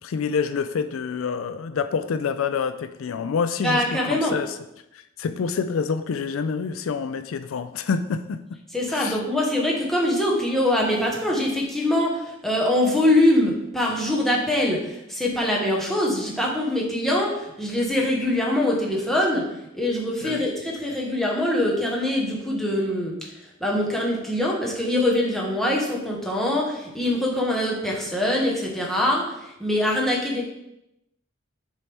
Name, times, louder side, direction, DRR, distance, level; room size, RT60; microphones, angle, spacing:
voice 1, 0.0-4.6 4.9-8.6 8.9-9.2 20.2-20.5, left 5 dB, 85° left, 11 dB, 0.4 m, -27 dB
voice 2, 3.6-4.3 8.7-23.1 23.4-30.4, left 1 dB, ahead, -3 dB, 1.2 m, -23 dB
6.9 x 4.6 x 3.5 m, 0.86 s
head